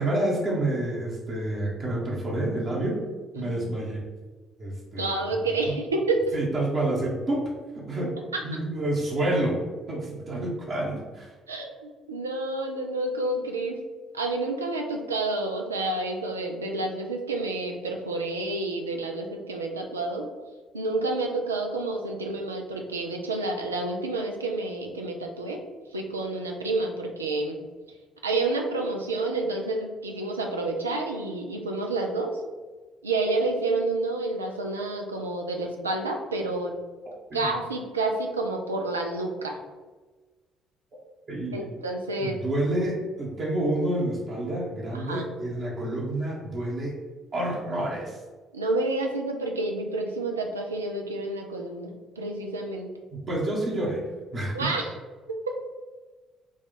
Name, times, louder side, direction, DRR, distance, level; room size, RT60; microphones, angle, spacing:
voice 1, 0.0-3.0 3.3-4.0 4.6-5.2 5.7-5.8 6.3-8.2 8.4-9.6 9.9-11.3 37.3-37.4 41.3-41.7 42.2-47.0 47.3-48.2 53.1-54.0 54.3-54.7, right 1 dB, 40° right, -4 dB, 0.9 m, -28 dB
voice 2, 3.3-3.7 5.0-6.3 8.3-8.4 11.5-13.8 14.1-20.3 20.7-25.6 25.9-27.6 28.2-32.3 33.0-36.8 37.3-39.6 41.5-42.4 44.9-45.2 48.5-52.9 54.5-54.9, right 2 dB, 80° right, 2 dB, 0.4 m, -29 dB
3.5 x 2.3 x 4.1 m, 1.3 s
figure-of-eight pair, 50°, 0 cm